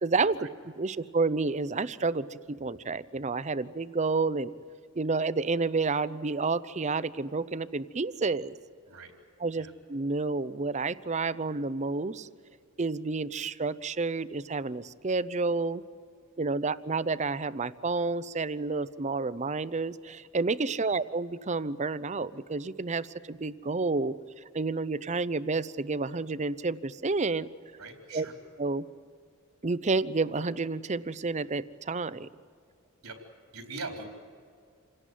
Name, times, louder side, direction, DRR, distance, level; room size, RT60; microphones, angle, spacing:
voice 1, 0.0-0.4 0.7-4.5 5.0-8.5 9.4-12.3 12.8-15.8 16.4-24.2 24.5-27.5 28.1-28.3 28.6-28.8 29.6-32.3, right 3 dB, 30° right, 15 dB, 0.6 m, -30 dB
voice 2, 27.8-28.3 33.0-33.2 33.5-34.0, right 3 dB, 90° right, 3 dB, 3.9 m, -41 dB
28.0 x 17.5 x 9.3 m, 2.2 s
head